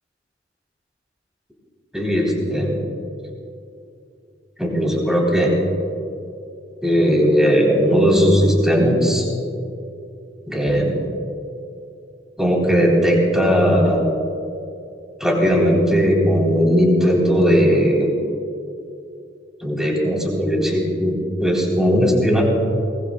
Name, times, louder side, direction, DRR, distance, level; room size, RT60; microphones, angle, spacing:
voice 1, 1.9-2.8 4.6-5.5 6.8-9.3 10.5-10.9 12.4-14.0 15.2-18.1 19.6-22.4, equal, 5° right, -2 dB, 3.4 m, -17 dB
23.0 x 20.0 x 2.3 m, 2.6 s
head